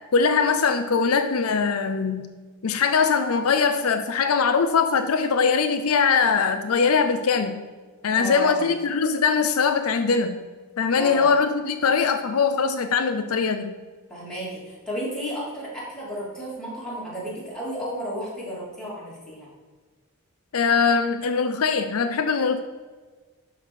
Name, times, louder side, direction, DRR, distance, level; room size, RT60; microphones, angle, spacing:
voice 1, 0.1-2.3 2.6-7.6 8.0-10.4 10.8-13.7 20.5-22.6, left 5 dB, 65° left, 8 dB, 0.5 m, -21 dB
voice 2, 8.1-8.7 10.9-11.3 14.1-19.5, equal, 5° left, -7 dB, 3.1 m, -33 dB
11.0 x 4.2 x 6.3 m, 1.4 s
head